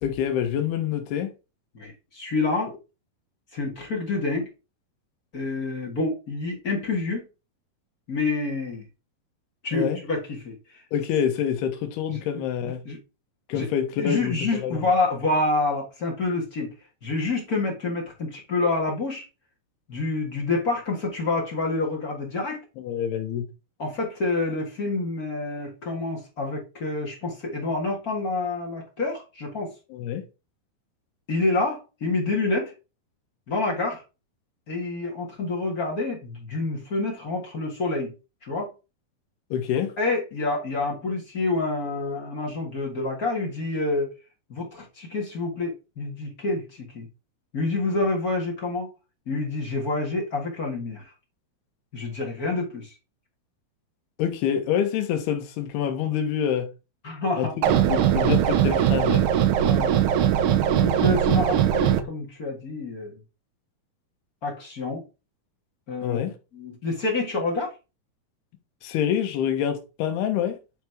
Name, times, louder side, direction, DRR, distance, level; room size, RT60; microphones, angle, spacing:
voice 1, 0.0-1.3 9.7-10.0 10.9-12.8 13.5-14.9 22.8-23.5 29.9-30.2 39.5-39.9 54.2-56.7 57.4-59.3 66.0-66.3 68.8-70.6, left 9 dB, 85° left, 3.2 m, -26 dB
voice 2, 1.7-2.7 3.5-4.5 5.3-7.2 8.1-8.8 9.6-10.8 12.8-13.0 13.5-13.7 14.0-16.7 17.0-19.2 19.9-22.6 23.8-29.7 31.3-32.7 33.5-34.0 34.7-38.1 38.4-38.7 40.0-44.1 44.5-47.1 47.5-48.9 49.2-51.0 51.9-52.9 57.0-57.5 59.6-60.0 60.7-63.2 64.4-65.0 65.9-66.2 66.5-67.7, left 3 dB, 40° left, 1.3 m, -27 dB
sound 1, 57.6-62.0, right 10 dB, 80° right, 1.7 m, -20 dB
10.5 x 3.5 x 4.6 m
omnidirectional pair, 4.5 m